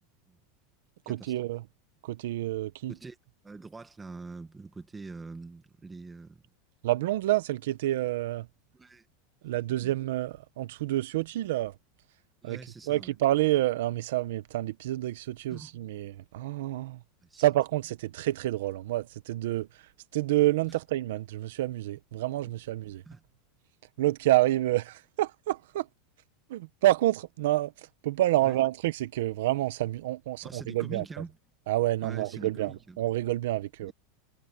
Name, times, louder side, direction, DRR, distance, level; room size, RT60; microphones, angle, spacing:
voice 1, 1.1-1.6 2.0-2.9 6.8-8.5 9.4-11.7 12.4-12.6 12.9-17.0 17.4-19.7 20.1-23.0 24.0-25.9 26.5-31.0 31.7-33.9, right 15 dB, 70° right, 1.1 m, -28 dB
voice 2, 3.4-6.4 8.7-9.1 9.8-9.9 12.4-13.2 15.5-15.7 17.2-17.4 23.0-23.2 28.4-28.6 30.4-31.4 32.0-33.0 33.8-33.9, right 3 dB, 10° right, 1.4 m, -44 dB
supercardioid pair, 175°, 0 cm